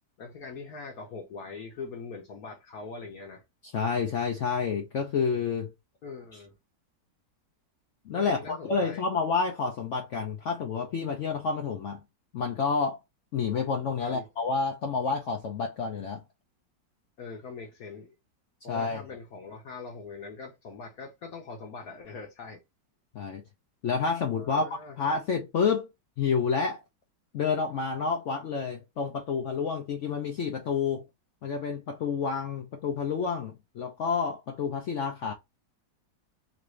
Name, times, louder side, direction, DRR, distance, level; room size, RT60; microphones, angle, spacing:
voice 1, 0.2-3.4 6.0-6.5 8.1-9.0 14.0-14.3 17.2-18.1 18.6-22.6 24.4-25.0, left 4 dB, 60° left, 1.1 m, -42 dB
voice 2, 3.7-5.7 8.1-12.0 12.3-13.0 13.3-16.2 18.7-19.0 23.1-23.4 23.8-25.9 26.2-26.8 27.3-31.1 31.4-35.3, left 5 dB, 75° left, 0.6 m, -29 dB
3.1 x 2.6 x 3.0 m
omnidirectional pair, 1.9 m